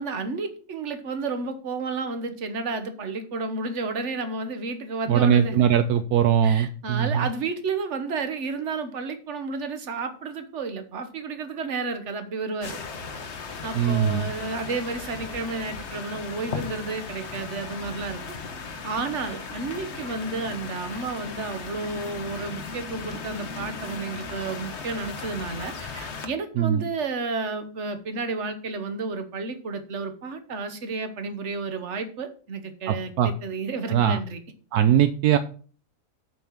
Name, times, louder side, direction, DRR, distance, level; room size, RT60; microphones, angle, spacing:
voice 1, 0.0-5.6 6.4-12.8 13.6-18.2 18.8-34.4, right 4 dB, 50° right, 9 dB, 1.4 m, -31 dB
voice 2, 5.1-7.3 13.7-14.3 26.6-26.8 32.9-33.3 33.9-34.2 34.7-35.4, right 9 dB, 75° right, 10 dB, 1.1 m, -21 dB
sound 1, 12.6-26.3, left 4 dB, 50° left, 1.3 m, -37 dB
8.4 x 5.5 x 7.1 m, 0.42 s
omnidirectional pair, 1.7 m